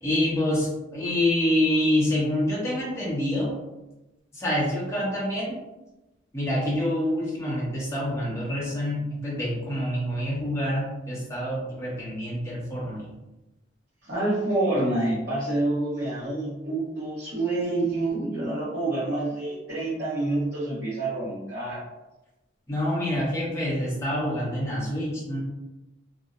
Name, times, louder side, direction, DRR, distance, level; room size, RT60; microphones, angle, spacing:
voice 1, 0.0-3.5 4.4-5.6 6.3-13.1 22.7-25.4, left 1 dB, 15° left, -6 dB, 0.6 m, -26 dB
voice 2, 14.1-21.8, right 2 dB, 60° right, -12 dB, 0.9 m, -27 dB
2.6 x 2.0 x 2.3 m, 1.0 s
head